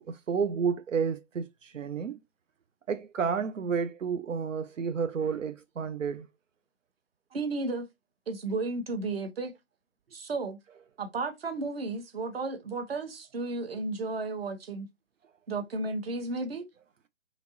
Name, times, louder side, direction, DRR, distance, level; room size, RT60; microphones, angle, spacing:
voice 1, 0.0-2.2 2.9-6.3, right 6 dB, 85° right, 0.5 m, -31 dB
voice 2, 7.3-7.9 8.3-9.5 10.1-10.6 11.0-14.9 15.5-16.6, right 3 dB, 50° right, 1.0 m, -33 dB
4.3 x 2.8 x 2.7 m
figure-of-eight pair, 140°, 37 cm